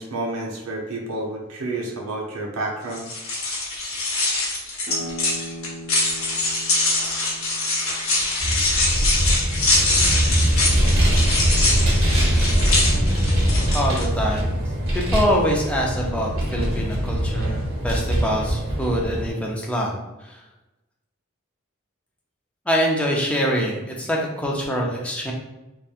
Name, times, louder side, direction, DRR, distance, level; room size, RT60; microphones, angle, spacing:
voice 1, 0.0-3.0, right 2 dB, 80° right, -1 dB, 0.5 m, -29 dB
sound 1, 2.9-14.0, left 2 dB, 90° left, 0.9 m, -23 dB
sound 2, 4.8-10.2, right 1 dB, 45° left, 0.7 m, -40 dB
Vehicle, 8.4-19.3, equal, 50° right, 1.1 m, -22 dB
voice 2, 13.7-14.5 14.9-20.0 20.2-20.4 22.7-25.3, equal, 5° left, -2 dB, 0.4 m, -24 dB
2.9 x 2.2 x 2.3 m, 0.99 s
head